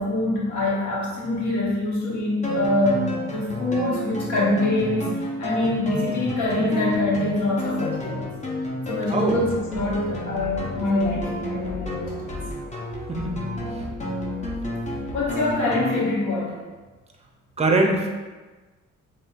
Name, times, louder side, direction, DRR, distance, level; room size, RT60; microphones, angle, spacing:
voice 1, 0.0-8.3 8.9-12.3 15.1-16.6, left 1 dB, 70° left, -5 dB, 1.2 m, -25 dB
sound 1, 2.4-16.1, left 1 dB, 25° left, 0.7 m, -30 dB
voice 2, 17.6-18.1, right 2 dB, 20° right, 2 dB, 0.6 m, -22 dB
4.2 x 3.1 x 2.4 m, 1.3 s
cardioid pair, 90°, 30 cm